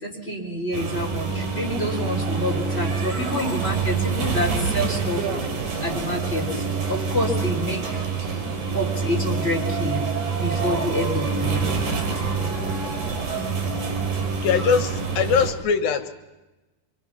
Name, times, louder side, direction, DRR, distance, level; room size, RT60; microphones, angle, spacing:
voice 1, 0.0-5.3 5.8-6.6 6.9-8.0 8.7-10.0 10.3-11.7, left 1 dB, 15° left, -1 dB, 3.7 m, -28 dB
sound 1, 0.7-15.5, right 5 dB, 60° right, 4.9 m, -26 dB
voice 2, 14.4-16.1, left 6 dB, 80° left, 8 dB, 3.1 m, -21 dB
26.0 x 25.0 x 6.0 m, 1.1 s
omnidirectional pair, 4.1 m